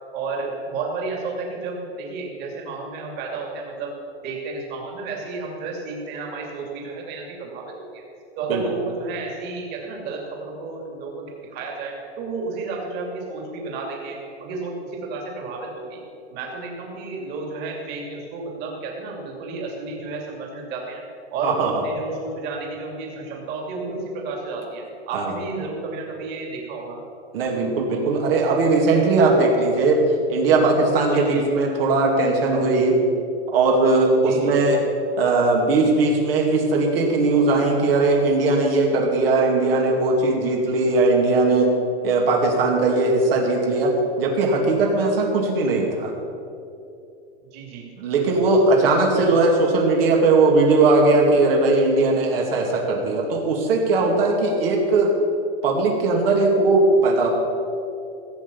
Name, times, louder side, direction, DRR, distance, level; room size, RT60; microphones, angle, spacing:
voice 1, 0.1-4.0 4.2-8.0 8.4-11.3 11.5-16.0 16.3-21.0 21.3-27.0 31.1-31.4 34.2-34.5 47.5-47.9 49.1-49.3, right 3 dB, 30° right, -1 dB, 2.7 m, -32 dB
voice 2, 27.3-30.0 30.3-33.0 33.5-34.8 35.2-41.8 42.0-46.1 48.0-55.1 55.6-57.3, right 3 dB, 60° right, 0 dB, 2.4 m, -19 dB
16.0 x 8.2 x 7.1 m, 2.7 s
supercardioid pair, 160°, 32 cm